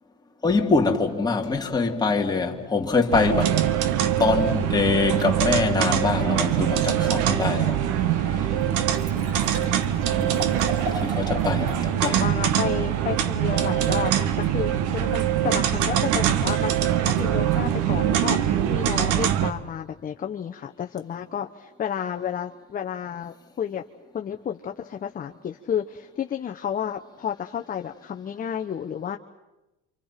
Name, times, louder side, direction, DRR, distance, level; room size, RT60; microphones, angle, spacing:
voice 1, 0.4-3.6 4.2-8.8 10.1-10.8 11.0-12.4, left 4 dB, 15° left, 2.8 m, -24 dB
sound 1, 3.1-19.5, right 10 dB, 75° right, 1.5 m, -23 dB
Liquid, 8.3-8.4 8.6-11.8 12.2-12.3, equal, 45° right, 4.2 m, -36 dB
voice 2, 9.1-10.0 12.0-23.8 24.1-29.2, left 8 dB, 30° left, 1.0 m, -31 dB
29.0 x 26.5 x 5.9 m
cardioid pair, 130°, 30 cm